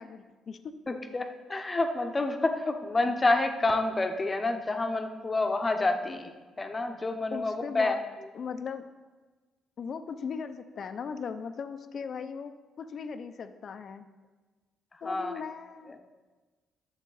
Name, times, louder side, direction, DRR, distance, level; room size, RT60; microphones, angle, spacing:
voice 1, 0.0-0.7 7.3-8.0 8.3-8.9 9.8-14.0 15.0-16.0, left 6 dB, 55° left, 10 dB, 0.6 m, -38 dB
voice 2, 0.9-6.3 6.6-7.9 15.0-15.3, left 2 dB, 25° left, 5 dB, 0.9 m, -28 dB
10.0 x 7.0 x 4.0 m, 1.3 s
cardioid pair, 90°, 0 cm